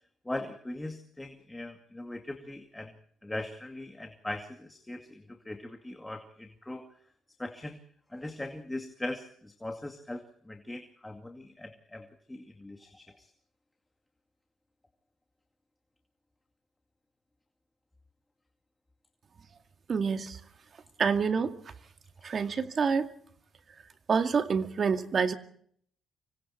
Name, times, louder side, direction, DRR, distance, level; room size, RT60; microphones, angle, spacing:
voice 1, 0.3-2.9 3.2-6.9 7.4-7.8 8.1-13.3, left 1 dB, 10° left, 5 dB, 2.2 m, -40 dB
voice 2, 19.9-20.4 21.0-21.5 22.2-23.1 24.1-25.3, right 5 dB, 45° right, 8 dB, 2.1 m, -27 dB
25.5 x 25.0 x 4.4 m, 0.62 s
cardioid pair, 90°, 0 cm